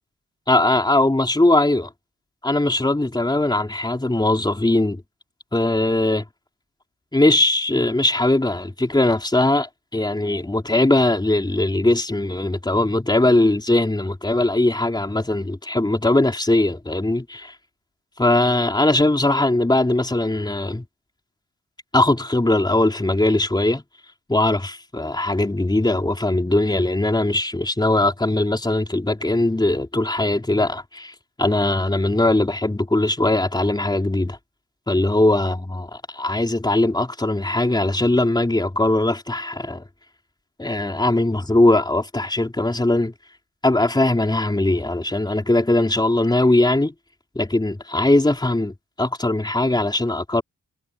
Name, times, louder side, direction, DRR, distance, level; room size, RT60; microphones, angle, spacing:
voice 1, 0.5-1.9 2.4-5.0 5.5-6.2 7.1-17.5 18.2-20.8 21.9-23.8 24.3-34.4 34.9-39.8 40.6-43.1 43.6-46.9 47.3-50.4, left 2 dB, 15° left, 4.1 m, -20 dB
wide cardioid pair, 105°, 30 cm